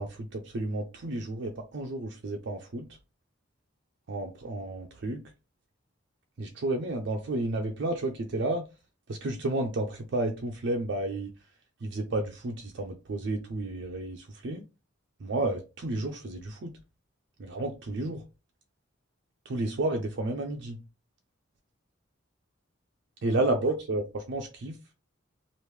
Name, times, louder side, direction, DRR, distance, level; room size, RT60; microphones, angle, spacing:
voice 1, 0.0-2.8 4.1-5.2 6.4-8.6 9.1-11.3 11.8-14.6 15.2-16.7 17.4-18.2 19.5-20.8 23.2-24.8, right 2 dB, 55° right, 0.4 m, -31 dB
3.1 x 2.5 x 3.2 m
head